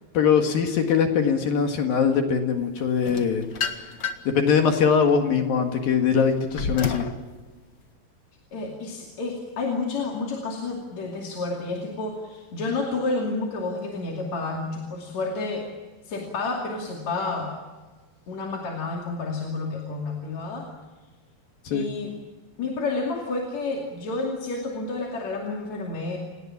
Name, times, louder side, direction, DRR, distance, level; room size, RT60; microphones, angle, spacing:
voice 1, 0.1-3.4 3.7-3.8 4.3-7.1 21.6-21.9, left 6 dB, 60° left, 4 dB, 3.4 m, -22 dB
sound 1, 3.0-4.4 4.9-7.2, left 5 dB, 85° left, 0.9 m, -31 dB
voice 2, 8.5-15.7 16.0-17.5 18.3-20.7 21.7-22.2 22.6-26.2, left 3 dB, 45° left, 0 dB, 3.5 m, -30 dB
29.0 x 19.0 x 7.4 m, 1.3 s
omnidirectional pair, 4.9 m